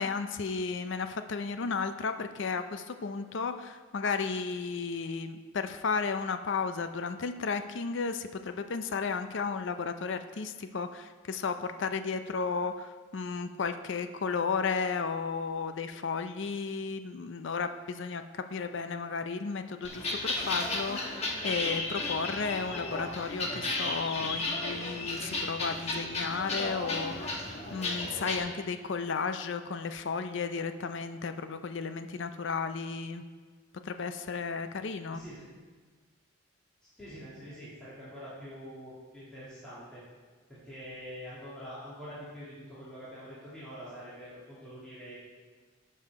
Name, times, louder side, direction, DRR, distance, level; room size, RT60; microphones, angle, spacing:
voice 1, 0.0-33.2 33.8-35.2, left 5 dB, 60° left, 9 dB, 0.5 m, -34 dB
sound 1, 19.8-28.4, left 2 dB, 30° left, 1.1 m, -34 dB
voice 2, 35.1-35.4 37.0-40.0 40.5-45.2, equal, 5° left, -13 dB, 2.3 m, -45 dB
11.5 x 5.6 x 4.6 m, 1.5 s
head